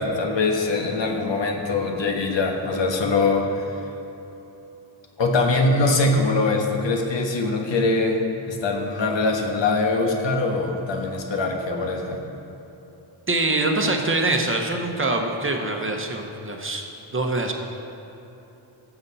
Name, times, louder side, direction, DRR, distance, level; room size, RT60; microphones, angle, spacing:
voice 1, 0.0-3.8 5.2-12.2, left 3 dB, 75° left, 2 dB, 1.3 m, -23 dB
voice 2, 13.3-16.8 17.1-17.5, right 2 dB, 30° right, 2 dB, 1.0 m, -24 dB
15.5 x 7.1 x 4.1 m, 3.0 s
wide cardioid pair, 110°, 45 cm